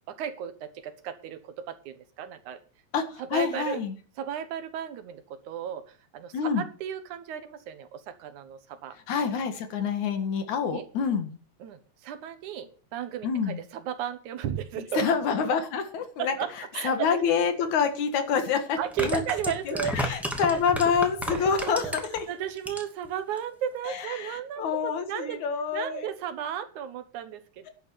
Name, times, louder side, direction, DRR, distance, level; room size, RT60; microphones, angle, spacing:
voice 1, 0.1-2.6 3.2-3.8 4.2-9.0 10.7-10.9 11.6-15.1 16.2-17.2 18.8-20.0 20.5-20.6 21.3-22.0 22.3-25.4 25.7-27.7, right 9 dB, 90° right, 11 dB, 2.7 m, -35 dB
voice 2, 2.9-4.0 6.3-6.6 9.1-11.4 13.2-13.6 14.9-16.3 16.8-19.2 19.7-22.3 23.9-26.0, left 6 dB, 75° left, 8 dB, 3.1 m, -27 dB
sound 1, 17.8-17.9 18.8-22.2 22.6-23.1 23.4-23.5, equal, ahead, 2.0 m, -32 dB
11.5 x 8.6 x 7.0 m, 0.39 s
omnidirectional pair, 3.3 m